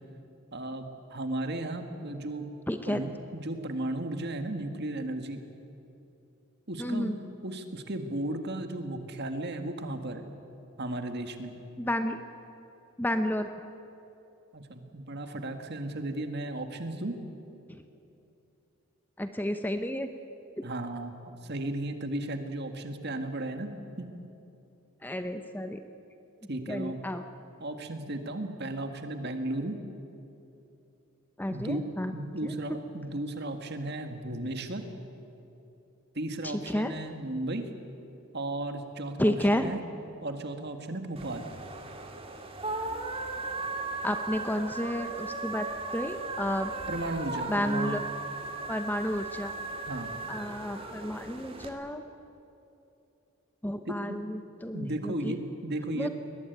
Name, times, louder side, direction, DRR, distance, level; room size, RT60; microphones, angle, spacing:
voice 1, 0.5-2.5 2.9-5.4 6.7-7.1 7.4-10.3 10.8-11.5 14.5-17.2 20.6-24.1 26.5-27.0 27.6-29.8 31.5-31.9 32.1-34.8 36.1-37.7 38.3-39.8 40.2-41.5 46.9-48.0 49.8-50.1 53.9-54.2 54.7-56.1, right 1 dB, 50° right, 6 dB, 1.9 m, -35 dB
voice 2, 2.7-3.0 6.8-7.2 11.8-12.2 13.0-13.6 17.7-17.8 19.2-20.1 20.6-20.7 25.0-25.8 26.7-27.2 31.4-32.1 32.4-32.5 36.4-36.9 39.2-39.7 44.0-46.7 47.5-48.0 48.7-49.5 50.3-52.0 53.6-55.4 55.9-56.1, left 1 dB, 10° left, 8 dB, 0.8 m, -31 dB
sound 1, 41.2-51.7, right 3 dB, 25° right, 2.1 m, -37 dB
22.5 x 19.0 x 9.4 m, 2.8 s
head